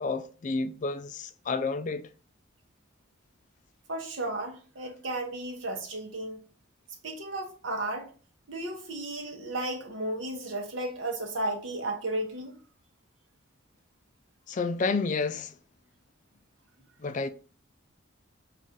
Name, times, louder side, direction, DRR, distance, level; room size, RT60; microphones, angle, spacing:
voice 1, 0.0-2.1 14.5-15.5 17.0-17.3, left 4 dB, 35° left, 0.3 m, -30 dB
voice 2, 3.9-6.4 7.0-8.1 8.5-12.5, right 1 dB, 65° right, 0.9 m, -34 dB
5.4 x 2.5 x 3.6 m
head